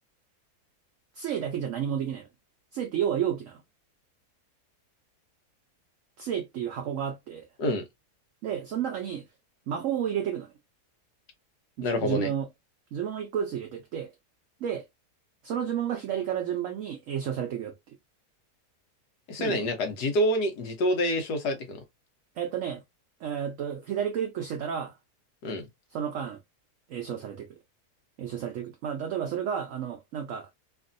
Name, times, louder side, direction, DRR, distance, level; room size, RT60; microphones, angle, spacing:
voice 1, 1.2-2.3 2.7-3.6 6.2-7.5 8.4-9.3 9.7-10.5 11.8-12.5 12.9-14.1 14.6-14.8 15.4-17.7 19.4-19.7 22.4-22.8 23.2-25.0 25.9-26.4 26.9-27.5 28.2-30.5, right 9 dB, 65° right, 0.8 m, -31 dB
voice 2, 11.8-12.3 19.3-21.8 25.4-25.7, left 1 dB, 85° left, 1.5 m, -27 dB
3.3 x 2.4 x 2.5 m
omnidirectional pair, 1.7 m